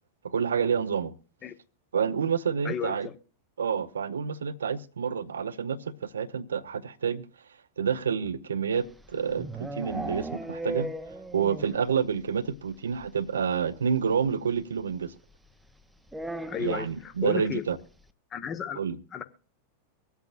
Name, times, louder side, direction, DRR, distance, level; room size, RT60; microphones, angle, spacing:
voice 1, 0.2-1.1 1.9-3.1 3.6-7.2 7.8-10.9 11.3-15.1 16.6-17.8 18.8-19.0, right 6 dB, 70° right, 0.7 m, -28 dB
voice 2, 2.6-3.1 16.5-17.6 18.3-18.8 19.1-19.2, left 8 dB, 25° left, 1.1 m, -33 dB
sound 1, 8.8-11.9 12.1-12.2 12.5-12.6 12.9-13.0 14.3-14.4 16.1-16.9, right 1 dB, 5° right, 0.8 m, -36 dB
24.0 x 8.2 x 2.5 m
figure-of-eight pair, 90°, 0 cm